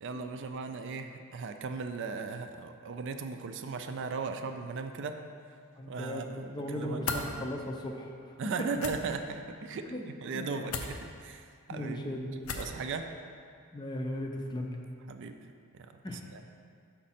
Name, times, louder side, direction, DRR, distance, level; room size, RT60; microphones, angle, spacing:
voice 1, 0.0-5.2 5.9-7.4 8.4-9.9 10.2-12.0 12.5-13.1 15.1-15.4 15.7-16.4, right 4 dB, 55° right, 7 dB, 0.4 m, -37 dB
voice 2, 5.8-8.3 9.9-10.1 10.3-10.8 11.7-12.5 13.7-14.8 16.0-16.4, left 1 dB, 20° left, 2 dB, 0.5 m, -37 dB
sound 1, 7.0-7.3 8.7-8.9 10.7-10.9 12.4-12.8, left 4 dB, 70° left, 0.6 m, -34 dB
6.3 x 5.9 x 4.2 m, 2.2 s
head